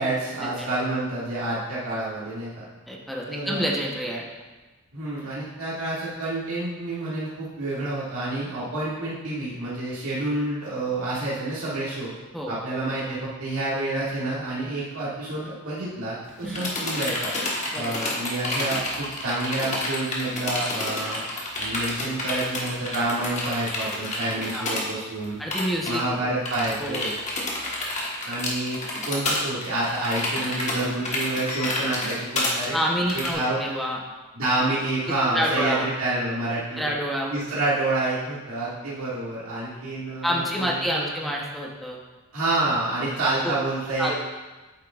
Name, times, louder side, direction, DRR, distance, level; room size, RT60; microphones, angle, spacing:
voice 1, 0.0-2.7 3.3-3.7 4.9-12.1 12.5-17.3 17.7-21.2 21.6-25.4 25.9-27.1 28.3-28.8 29.0-32.8 33.1-33.6 34.3-36.9 37.3-41.3 42.3-44.2, right 2 dB, 85° right, -8 dB, 1.9 m, -28 dB
voice 2, 2.9-4.3 12.3-12.5 16.4-16.6 17.7-17.9 24.3-24.7 25.4-26.0 26.8-27.1 32.7-34.0 35.1-35.9 36.8-37.4 40.2-42.0 43.4-43.5 44.0-44.1, equal, ahead, -3 dB, 0.8 m, -28 dB
sound 1, 16.3-24.9 25.2-25.3 25.5-26.0 26.5-33.3, left 2 dB, 35° left, 1.3 m, -29 dB
Bell, 31.5-33.5, left 9 dB, 85° left, 1.8 m, -43 dB
8.6 x 7.3 x 2.4 m, 1.2 s
head